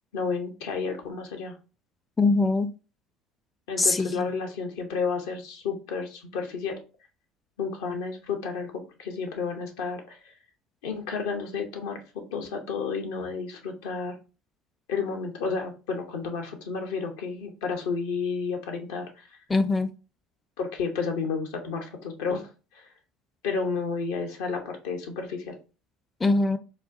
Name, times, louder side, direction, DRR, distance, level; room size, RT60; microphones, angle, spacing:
voice 1, 0.1-1.6 3.7-6.8 7.6-10.2 10.8-14.2 14.9-19.3 20.6-22.5 22.7-22.9 23.4-25.6, left 5 dB, 75° left, 3 dB, 0.7 m, -31 dB
voice 2, 2.2-2.7 3.8-4.3 19.5-19.9 26.2-26.6, left 3 dB, 20° left, 11 dB, 0.4 m, -22 dB
4.1 x 2.2 x 2.5 m, 0.33 s
hypercardioid pair, 65°, 0 cm